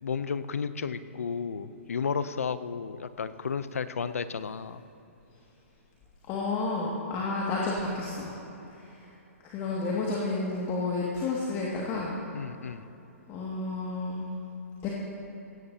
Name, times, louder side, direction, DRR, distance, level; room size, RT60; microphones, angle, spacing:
voice 1, 0.0-4.8 12.3-12.8, left 6 dB, 80° left, 13 dB, 0.6 m, -33 dB
voice 2, 6.3-8.3 8.7-9.1 9.4-12.2 13.3-14.3 14.8-14.9, left 3 dB, 35° left, -4 dB, 2.2 m, -31 dB
17.5 x 17.0 x 2.9 m, 2.9 s
hypercardioid pair, 125°, 8 cm